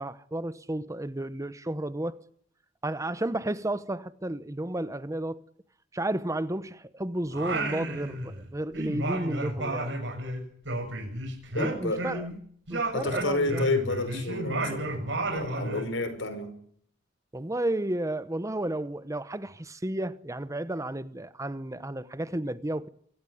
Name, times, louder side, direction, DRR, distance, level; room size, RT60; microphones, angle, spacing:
voice 1, 0.0-2.2 2.8-5.4 5.9-10.0 11.6-12.3 12.7-13.7 17.3-22.9, right 1 dB, 15° right, 0.9 m, -32 dB
Singing, 7.3-8.5 8.7-12.4 12.7-15.9, right 2 dB, 70° right, 7.0 m, -32 dB
voice 2, 11.5-12.0 12.9-15.0 15.2-16.5, left 2 dB, 80° left, 5.5 m, -30 dB
25.0 x 17.0 x 10.0 m
head